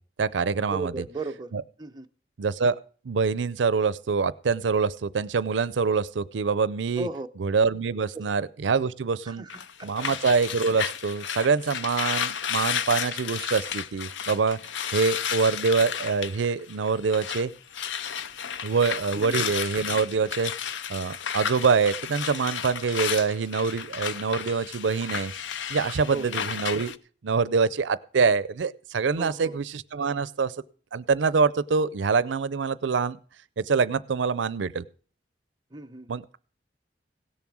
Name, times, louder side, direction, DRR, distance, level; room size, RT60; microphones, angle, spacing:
voice 1, 0.2-0.9 1.5-1.6 2.4-2.8 3.1-7.1 7.4-9.4 9.8-14.6 14.9-17.5 18.6-20.5 20.9-25.3 25.7-26.9 27.2-30.5 30.9-33.2 33.6-34.8 36.1-36.4, right 5 dB, 85° right, 0.5 m, -25 dB
voice 2, 0.7-1.5 1.8-2.1 7.0-7.3 8.1-8.3 9.3-10.1 19.1-19.4 26.1-26.3 29.2-29.6 35.7-36.2, right 3 dB, 25° right, 0.7 m, -36 dB
sound 1, 9.5-17.5 17.7-26.9, left 8 dB, 85° left, 0.6 m, -32 dB
17.0 x 7.2 x 6.2 m
head